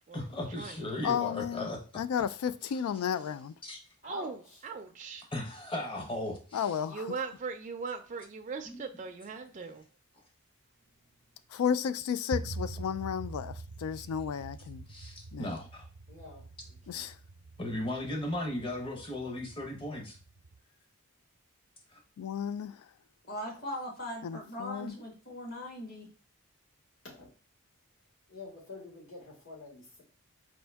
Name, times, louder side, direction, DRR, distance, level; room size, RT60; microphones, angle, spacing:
voice 1, 0.1-1.8 3.6-3.8 5.3-6.7 8.7-8.8 14.9-15.9 17.6-20.2 21.9-22.0, left 1 dB, 25° left, 0.8 m, -36 dB
voice 2, 1.0-1.7 1.9-3.6 6.5-7.2 11.5-14.9 15.3-15.5 16.9-17.2 22.2-22.9 24.2-25.0, left 8 dB, 85° left, 0.3 m, -33 dB
voice 3, 4.0-5.3 6.9-9.8, right 5 dB, 35° right, 0.3 m, -39 dB
sound 1, 12.3-20.6, right 3 dB, 85° right, 0.5 m, -45 dB
voice 4, 16.1-16.4 16.9-17.1 27.0-27.3 28.3-30.0, left 3 dB, 65° left, 2.1 m, -46 dB
voice 5, 23.3-26.1, left 1 dB, 45° left, 1.4 m, -40 dB
4.4 x 2.6 x 3.4 m
head